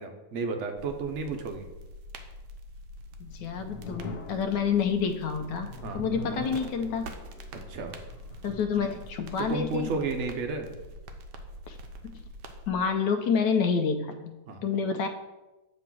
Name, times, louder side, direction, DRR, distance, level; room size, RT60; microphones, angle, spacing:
voice 1, 0.0-1.7 5.8-6.0 7.5-7.9 9.4-10.7 14.5-14.6, right 4 dB, 55° right, 5 dB, 0.9 m, -32 dB
sound 1, 0.8-12.7, equal, 80° right, 1.3 m, -45 dB
sound 2, 3.0-10.2, left 2 dB, 65° left, 1.3 m, -44 dB
voice 2, 3.2-7.1 8.4-9.9 11.7-11.8 12.0-12.2 12.7-14.4 14.6-15.1, left 6 dB, 85° left, 5 dB, 1.2 m, -28 dB
7.5 x 3.0 x 6.0 m, 1.1 s
omnidirectional pair, 1.8 m